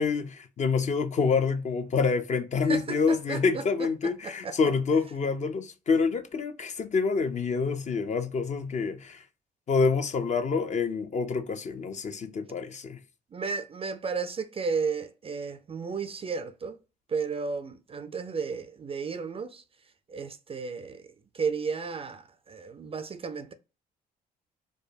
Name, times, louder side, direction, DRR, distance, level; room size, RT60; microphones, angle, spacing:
voice 1, 0.0-9.2 9.7-13.0, left 5 dB, 35° left, 0.6 m, -27 dB
voice 2, 2.7-3.6 4.0-4.6 13.3-16.8 17.1-19.6 20.1-21.0 21.3-23.5, right 5 dB, 25° right, 0.5 m, -33 dB
4.8 x 2.2 x 2.6 m
figure-of-eight pair, 45°, 21 cm